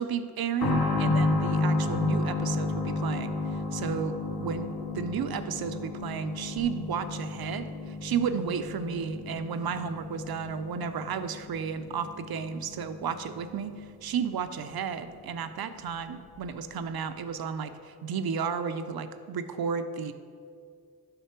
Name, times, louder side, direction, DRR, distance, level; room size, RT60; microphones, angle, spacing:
voice 1, 0.0-3.3 3.7-20.1, right 6 dB, 65° right, 10 dB, 0.5 m, -33 dB
sound 1, 0.6-15.0 15.3-15.4 16.4-16.5, left 3 dB, 65° left, 1.2 m, -32 dB
6.7 x 5.7 x 4.4 m, 2.3 s
cardioid pair, 45°, 41 cm